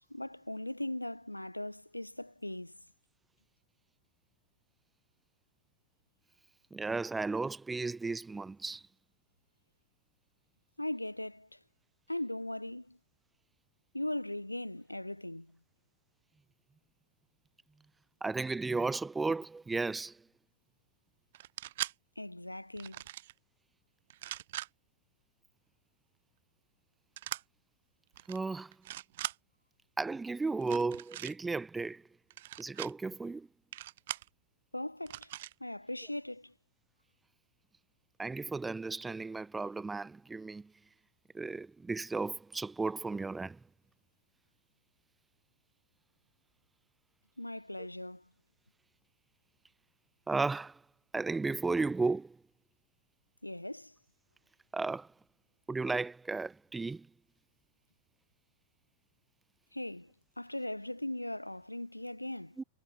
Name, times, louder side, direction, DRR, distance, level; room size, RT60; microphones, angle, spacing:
voice 1, 0.0-2.8 10.8-11.6 12.1-13.0 13.9-15.6 22.2-23.0 34.7-35.3 35.6-36.5 47.4-48.3 53.4-53.9 59.7-62.6, left 1 dB, 85° left, 2.1 m, -39 dB
voice 2, 6.7-8.8 18.2-20.1 28.3-28.7 30.0-32.0 32.6-33.5 38.2-40.6 41.3-43.6 50.3-50.7 51.1-52.4 54.7-55.1 55.7-57.1 62.6-62.7, right 3 dB, 10° right, 1.0 m, -34 dB
sound 1, 21.3-21.9 22.8-23.3 24.1-24.7 27.2-27.4 28.1-28.4 28.7-29.4 30.6-31.3 32.3-32.9 33.7-34.3 35.1-35.5, right 14 dB, 55° right, 0.8 m, -40 dB
figure-of-eight pair, 90°, 0 cm